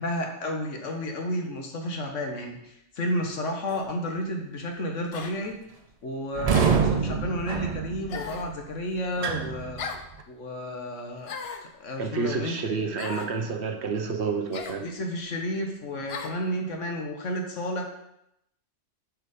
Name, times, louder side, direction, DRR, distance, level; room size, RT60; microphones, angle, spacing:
voice 1, 0.0-5.6 6.0-10.0 10.3-11.3 11.6-12.8 14.8-17.8, equal, 85° left, 3 dB, 1.6 m, -32 dB
sound 1, 3.7-3.9 5.1-5.4 6.5-6.9 8.1-8.5 9.8-10.1 11.2-11.7 13.0-13.3 14.5-14.8 16.1-16.4, left 5 dB, 60° left, 0.9 m, -37 dB
sound 2, 6.3-10.2, right 6 dB, 45° right, 0.5 m, -27 dB
voice 2, 12.0-14.9, right 5 dB, 65° right, 5 dB, 1.1 m, -29 dB
7.5 x 5.0 x 5.1 m, 0.81 s
omnidirectional pair, 1.3 m